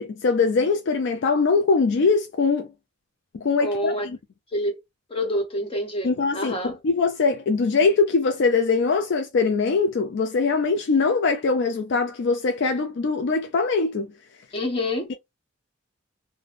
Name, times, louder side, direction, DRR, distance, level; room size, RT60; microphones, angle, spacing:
voice 1, 0.0-2.7 3.3-4.2 6.0-14.1, left 4 dB, 55° left, 0.3 m, -22 dB
voice 2, 3.6-4.1 4.5-4.8 5.1-6.7 14.5-15.1, left 1 dB, 25° left, 1.0 m, -27 dB
3.3 x 2.1 x 2.5 m
head